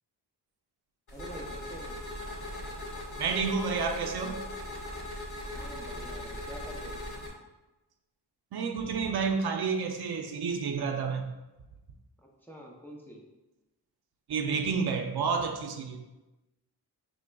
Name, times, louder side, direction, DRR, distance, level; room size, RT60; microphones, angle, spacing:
sound 1, 1.1-7.3, left 1 dB, 65° left, 1.3 m, -39 dB
voice 1, 1.1-2.0 5.5-7.0 12.2-13.2, right 1 dB, 5° left, -2 dB, 0.5 m, -46 dB
voice 2, 3.2-4.4 8.5-11.2 14.3-16.0, right 5 dB, 70° right, 4 dB, 0.5 m, -30 dB
6.0 x 3.2 x 2.2 m, 1.1 s
wide cardioid pair, 150°, 41 cm